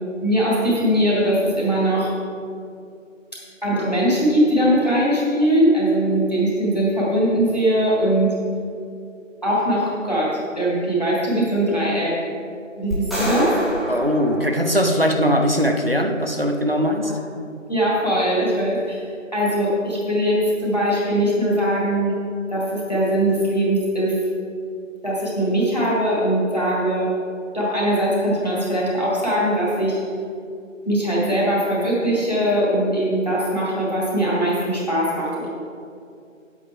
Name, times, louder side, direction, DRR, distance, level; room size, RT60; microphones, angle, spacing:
voice 1, 0.2-2.1 3.6-8.3 9.4-10.3 10.6-12.1 12.8-13.5 17.0-17.1 17.7-19.0 19.3-22.2 22.5-24.1 25.0-27.1 27.5-30.0 30.9-35.5, right 1 dB, 30° left, -6 dB, 2.2 m, -21 dB
sound 1, 12.9-15.3, equal, ahead, 1.0 m, -27 dB
voice 2, 13.9-17.1, equal, 45° right, 5 dB, 0.8 m, -20 dB
9.4 x 8.2 x 4.5 m, 2.4 s
figure-of-eight pair, 175°, 39 cm